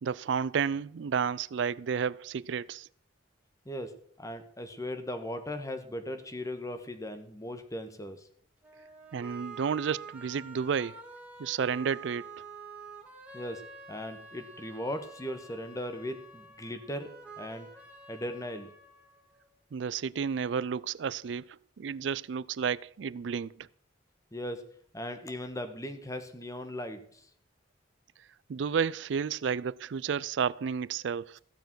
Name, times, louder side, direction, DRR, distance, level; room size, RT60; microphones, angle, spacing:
voice 1, 0.0-2.9 9.1-11.0 11.4-12.3 19.7-23.7 28.5-31.4, right 6 dB, 70° right, 0.4 m, -31 dB
voice 2, 3.6-8.3 13.3-17.7 18.1-18.7 24.3-24.7 24.9-27.3, left 1 dB, 20° left, 1.3 m, -38 dB
sound 1, 8.6-19.6, right 4 dB, 5° right, 2.4 m, -48 dB
15.0 x 6.9 x 6.1 m
head